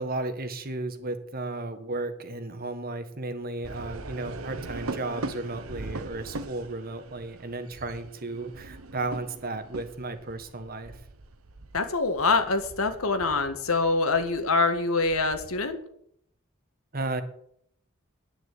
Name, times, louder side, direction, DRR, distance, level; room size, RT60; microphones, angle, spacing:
voice 1, 0.0-11.0 16.9-17.2, right 2 dB, 45° right, 9 dB, 1.4 m, -34 dB
sound 1, 3.6-15.7, right 2 dB, 80° right, 1.1 m, -41 dB
voice 2, 11.7-15.8, left 3 dB, 85° left, 8 dB, 1.7 m, -25 dB
10.0 x 9.8 x 8.4 m, 0.69 s
head